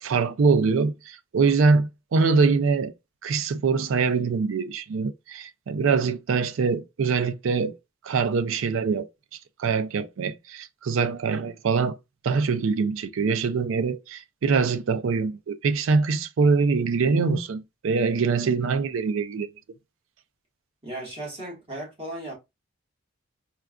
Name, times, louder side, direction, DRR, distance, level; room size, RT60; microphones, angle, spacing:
voice 1, 0.0-2.9 3.2-7.7 8.0-9.1 9.6-12.0 12.2-19.5, right 4 dB, 80° right, 0.4 m, -23 dB
voice 2, 20.8-22.3, right 1 dB, 30° right, 1.5 m, -36 dB
4.4 x 2.4 x 2.2 m
head